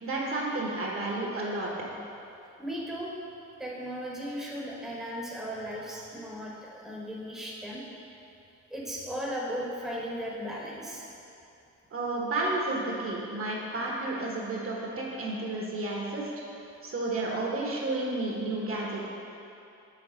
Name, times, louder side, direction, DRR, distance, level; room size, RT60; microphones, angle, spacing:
voice 1, 0.0-1.7 11.9-16.3 16.6-19.1, right 2 dB, 45° right, -3 dB, 1.3 m, -31 dB
voice 2, 2.6-3.1 3.6-7.8 8.7-11.1, equal, ahead, -5 dB, 1.1 m, -36 dB
6.3 x 3.9 x 5.1 m, 2.7 s
cardioid pair, 90°, 30 cm